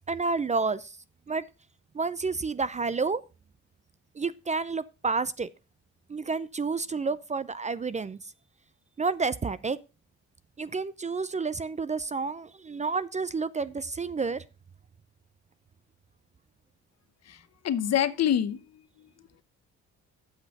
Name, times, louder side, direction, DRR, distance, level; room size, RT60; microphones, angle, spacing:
voice 1, 0.1-0.9 1.3-1.4 1.9-3.2 4.2-5.5 6.1-8.2 9.0-9.8 10.6-14.4, right 4 dB, 25° right, 0.4 m, -30 dB
voice 2, 17.3-19.1, left 10 dB, 60° left, 0.9 m, -27 dB
8.0 x 6.2 x 5.3 m
cardioid pair, 90°, 30 cm